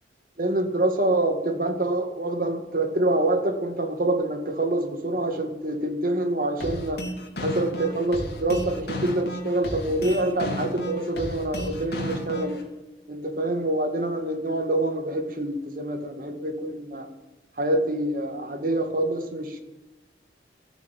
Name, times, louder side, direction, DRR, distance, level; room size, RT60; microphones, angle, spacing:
voice 1, 0.4-7.1 7.4-12.6 13.1-17.1 17.6-19.6, right 1 dB, 50° right, 5 dB, 2.1 m, -26 dB
sound 1, 6.6-12.6, left 1 dB, 65° left, 3.2 m, -33 dB
14.5 x 9.2 x 9.2 m, 1.0 s
head